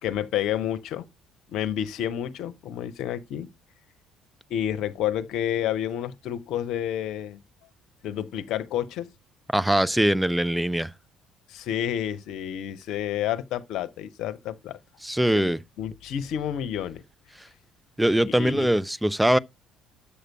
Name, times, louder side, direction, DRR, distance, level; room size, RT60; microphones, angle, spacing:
voice 1, 0.0-1.1 1.5-3.5 4.5-7.4 8.0-9.1 11.5-14.8 15.3-15.5 15.8-17.0 18.2-18.7, left 10 dB, 65° left, 0.9 m, -30 dB
voice 2, 9.5-10.9 15.0-15.6 18.0-19.4, right 1 dB, 5° right, 0.5 m, -22 dB
8.6 x 6.6 x 4.6 m
hypercardioid pair, 60°, 0 cm